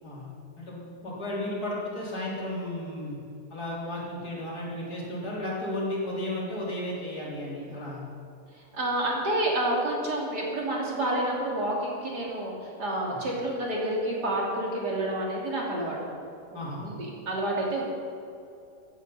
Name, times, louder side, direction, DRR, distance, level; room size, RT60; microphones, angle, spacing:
voice 1, 0.0-3.2 3.5-8.0 13.1-13.2 16.5-16.9, left 1 dB, 75° left, -6 dB, 4.2 m, -34 dB
voice 2, 8.7-16.0 16.8-17.9, right 1 dB, 90° right, -3 dB, 3.5 m, -29 dB
16.0 x 10.0 x 5.5 m, 2.7 s
omnidirectional pair, 1.7 m